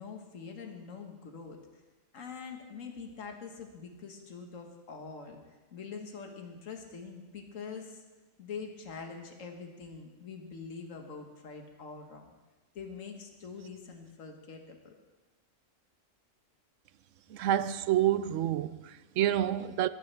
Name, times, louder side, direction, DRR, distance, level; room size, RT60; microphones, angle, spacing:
voice 1, 0.0-1.6 2.1-5.4 5.7-8.0 8.4-12.3 12.7-14.9, left 5 dB, 75° left, 1.8 m, -44 dB
voice 2, 17.3-19.9, right 12 dB, 75° right, 1.0 m, -28 dB
22.5 x 14.0 x 3.4 m
omnidirectional pair, 1.4 m